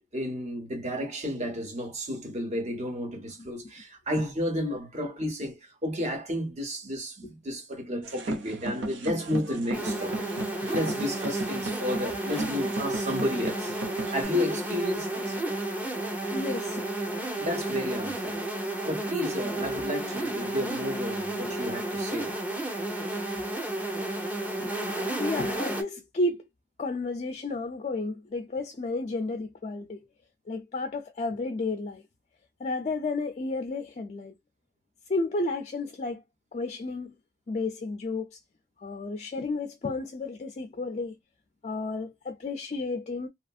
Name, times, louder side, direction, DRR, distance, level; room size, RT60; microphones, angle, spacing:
voice 1, 0.1-10.2 10.7-13.7 14.1-15.4 17.4-18.4 18.8-22.4, left 1 dB, 40° right, 1.2 m, -32 dB
sound 1, 8.0-14.2, right 2 dB, 85° right, 0.7 m, -35 dB
sound 2, 9.7-25.8, right 1 dB, 10° right, 0.7 m, -32 dB
voice 2, 16.3-16.9 19.6-19.9 24.6-24.7 25.2-26.5 26.8-30.0 30.5-32.0 32.6-34.3 35.1-36.2 36.5-37.1 37.5-38.4 38.8-41.2 41.6-43.3, left 3 dB, 40° left, 0.4 m, -32 dB
2.8 x 2.5 x 2.4 m
head